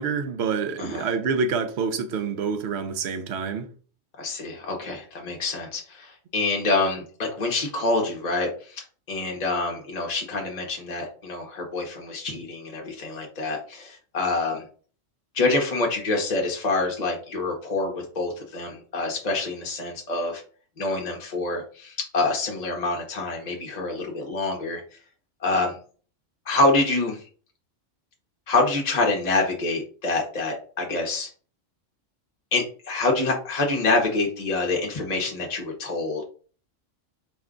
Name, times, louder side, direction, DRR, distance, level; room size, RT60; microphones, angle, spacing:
voice 1, 0.0-3.7, right 5 dB, 65° right, 0.8 m, -27 dB
voice 2, 4.2-14.6 15.3-20.4 20.8-24.8 25.4-25.8 26.5-27.2 28.5-31.3 32.5-36.2, left 3 dB, 40° left, 0.8 m, -26 dB
4.4 x 2.3 x 3.6 m
omnidirectional pair, 1.3 m